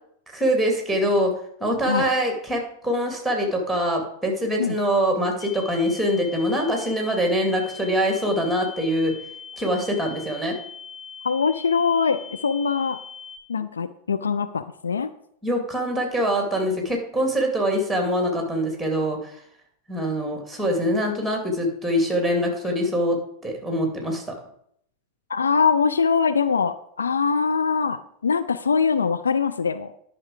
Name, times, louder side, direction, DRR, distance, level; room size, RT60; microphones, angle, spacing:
voice 1, 0.3-1.3 1.6-9.1 9.6-10.6 15.4-19.4 19.9-23.2 23.4-24.3, equal, ahead, 2 dB, 2.4 m, -24 dB
sound 1, 5.4-13.4, left 6 dB, 55° left, 2.1 m, -41 dB
voice 2, 11.2-13.0 13.5-15.1 25.3-29.9, left 5 dB, 70° left, 11 dB, 0.4 m, -23 dB
10.5 x 5.7 x 4.9 m, 0.69 s
figure-of-eight pair, 90°, 0 cm